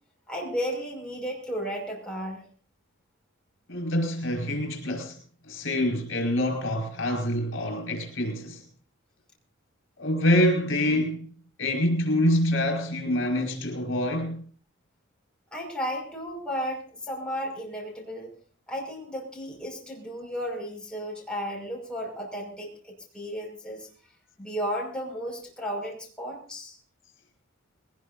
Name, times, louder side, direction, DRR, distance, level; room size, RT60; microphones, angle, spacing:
voice 1, 0.3-2.4 15.5-18.3 18.7-23.9 24.4-26.8, equal, 5° left, 5.6 m, -34 dB
voice 2, 3.7-5.2 5.5-8.6 10.0-11.3 11.6-14.4, left 1 dB, 70° left, 5.3 m, -26 dB
21.5 x 19.5 x 2.7 m
head